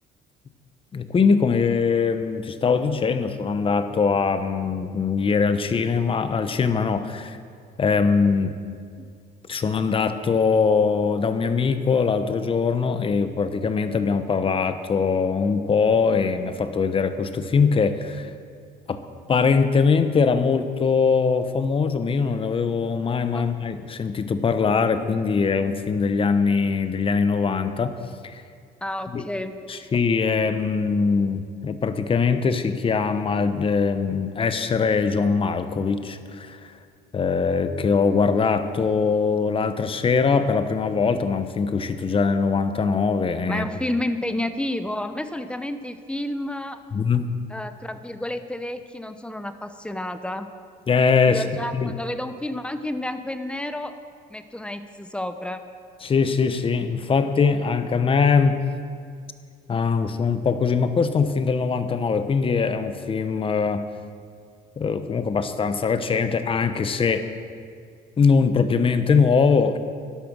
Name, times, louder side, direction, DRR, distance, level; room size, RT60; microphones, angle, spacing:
voice 1, 0.9-7.4 7.8-8.6 9.5-18.3 18.9-19.0 19.3-27.9 28.2-28.4 29.1-29.2 29.7-36.7 37.1-43.6 46.9-47.3 50.9-51.4 51.7-51.9 56.0-58.6 59.7-63.8 64.8-67.3 68.2-69.8, left 5 dB, 30° left, 10 dB, 0.9 m, -22 dB
voice 2, 28.8-29.6 43.5-46.8 47.5-50.5 51.3-54.0 54.3-55.6, left 1 dB, 5° left, 9 dB, 0.8 m, -30 dB
13.0 x 11.0 x 6.3 m, 2.2 s
cardioid pair, 110°, 17 cm